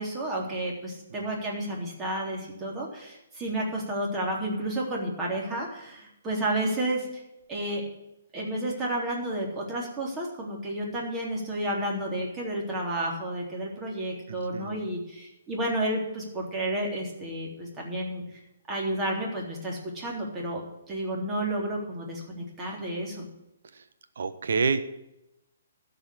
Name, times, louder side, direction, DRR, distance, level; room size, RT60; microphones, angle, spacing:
voice 1, 0.0-7.2 7.5-7.8 8.3-18.2 18.7-20.6 20.9-23.3, right 1 dB, 20° right, -2 dB, 3.6 m, -31 dB
voice 2, 14.3-14.9 23.7-23.8 24.2-24.9, right 5 dB, 65° right, 10 dB, 1.1 m, -29 dB
12.5 x 5.6 x 8.3 m, 0.88 s
figure-of-eight pair, 130°, 0 cm